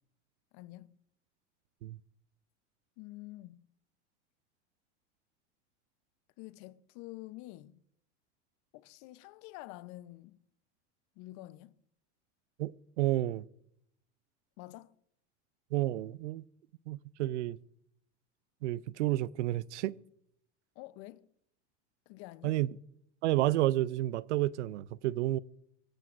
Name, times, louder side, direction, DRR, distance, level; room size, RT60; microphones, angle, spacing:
voice 1, 0.5-1.0 3.0-3.7 6.4-7.8 8.7-10.4 11.2-11.7 14.6-14.9 20.8-21.3 22.1-22.6, left 18 dB, 55° left, 0.8 m, -48 dB
voice 2, 12.6-13.4 15.7-16.5 16.9-17.6 18.6-20.0 22.4-22.8 23.2-25.4, right 15 dB, 85° right, 0.6 m, -30 dB
23.5 x 16.0 x 2.6 m
supercardioid pair, 105°, 34 cm